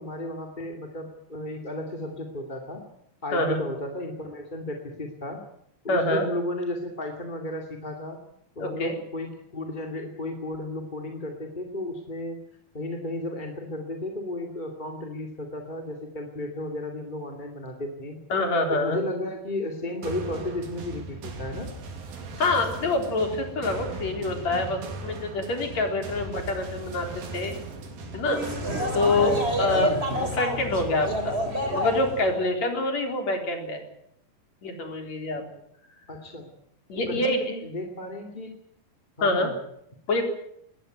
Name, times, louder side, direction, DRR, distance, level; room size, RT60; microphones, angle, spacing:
voice 1, 0.0-2.8 3.2-5.4 5.8-8.2 8.6-12.4 12.7-18.2 18.7-21.7 29.7-30.0 36.1-36.5 37.1-38.5 39.2-39.5, left 1 dB, 15° left, 2 dB, 2.1 m, -34 dB
voice 2, 5.9-6.2 8.6-8.9 18.3-19.0 22.4-27.5 28.1-28.4 28.9-29.9 30.2-31.4 31.6-33.8 34.6-35.4 36.9-37.4 39.2-39.5 40.1-40.2, left 2 dB, 50° left, 4 dB, 5.0 m, -26 dB
sound 1, 20.0-29.6, right 2 dB, 75° right, 4.9 m, -38 dB
sound 2, 28.2-32.4, equal, 15° right, 3.5 m, -28 dB
21.0 x 18.0 x 9.2 m, 0.73 s
omnidirectional pair, 4.2 m